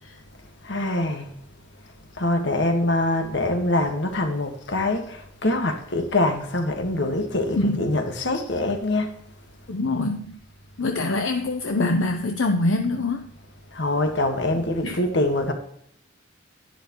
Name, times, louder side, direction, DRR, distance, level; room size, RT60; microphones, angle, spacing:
voice 1, 0.6-1.3 2.2-9.1 13.7-15.5, left 2 dB, 65° left, 1.7 m, -24 dB
voice 2, 7.5-8.0 9.7-10.4 10.8-13.3 14.5-15.0, left 2 dB, 80° left, 0.8 m, -25 dB
11.0 x 11.0 x 3.1 m
head